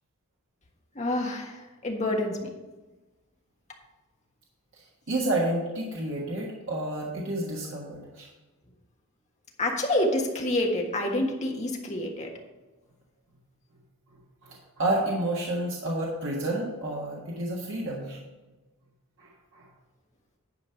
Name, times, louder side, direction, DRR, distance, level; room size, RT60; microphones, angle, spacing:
voice 1, 0.9-2.5 9.6-12.3, left 1 dB, 30° left, 1 dB, 1.4 m, -28 dB
voice 2, 5.1-8.3 14.4-18.2 19.2-19.6, right 1 dB, 55° right, -3 dB, 1.5 m, -30 dB
10.5 x 5.1 x 5.8 m, 1.1 s
head